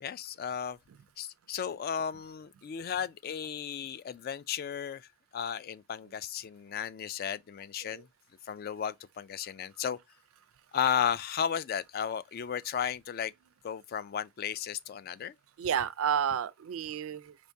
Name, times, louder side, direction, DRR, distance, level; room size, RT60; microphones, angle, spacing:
voice 1, 0.0-0.8 1.2-5.0 5.3-8.0 8.5-10.0 10.7-13.3 13.6-15.3, left 8 dB, 45° left, 0.3 m, -34 dB
voice 2, 15.6-17.4, right 8 dB, 80° right, 0.4 m, -31 dB
5.1 x 3.4 x 2.6 m
head